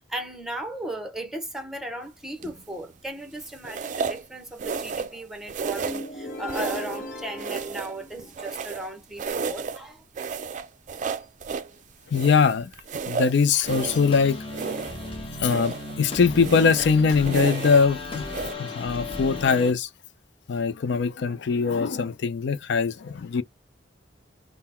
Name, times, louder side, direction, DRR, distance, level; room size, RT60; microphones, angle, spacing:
voice 1, 0.0-10.0, right 1 dB, ahead, 0.8 m, -36 dB
sound 1, 2.4-2.7 3.6-4.2 4.6-5.2 5.5-6.1 6.5-7.0 7.4-8.9 9.2-9.8 10.2-11.7 12.1-14.1 14.5-15.1 15.4-15.9 16.3-16.9 17.2-17.9 18.2-18.5, right 5 dB, 45° right, 0.4 m, -32 dB
sound 2, 5.8-8.7, equal, 50° left, 0.9 m, -38 dB
voice 2, 12.1-12.7 13.1-14.5 15.4-18.2 18.6-19.9 20.5-23.4, left 5 dB, 65° left, 0.4 m, -22 dB
sound 3, 13.7-19.7, left 2 dB, 30° left, 1.1 m, -35 dB
3.7 x 2.1 x 4.2 m
head